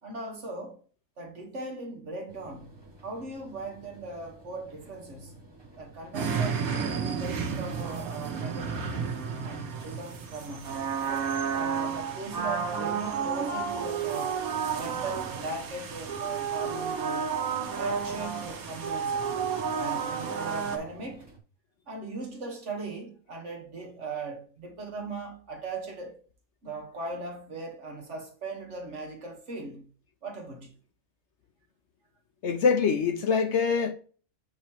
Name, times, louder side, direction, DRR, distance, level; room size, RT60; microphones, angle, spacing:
voice 1, 0.0-0.8 1.2-5.4 5.8-9.1 9.4-10.8 11.1-11.3 11.5-14.4 14.7-17.3 17.7-19.3 19.8-21.3 21.9-26.2 26.6-29.9 30.2-30.7, right 3 dB, 60° right, 1.6 m, -39 dB
sound 1, 2.3-21.4, right 1 dB, 20° right, 1.1 m, -53 dB
sound 2, 6.1-20.8, right 6 dB, 85° right, 1.4 m, -31 dB
voice 2, 32.4-33.9, left 5 dB, 60° left, 0.9 m, -24 dB
7.5 x 3.1 x 4.4 m
omnidirectional pair, 1.5 m